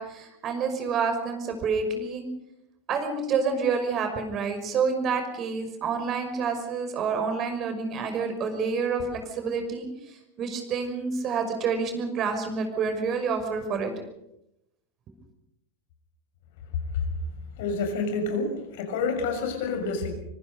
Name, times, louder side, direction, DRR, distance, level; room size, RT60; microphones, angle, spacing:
voice 1, 0.0-2.3 2.9-9.9 10.4-13.9, right 5 dB, 35° right, 6 dB, 5.9 m, -28 dB
voice 2, 17.6-20.1, left 4 dB, 55° left, 5 dB, 6.4 m, -28 dB
25.0 x 24.5 x 5.4 m, 0.83 s
figure-of-eight pair, 85°, 0 cm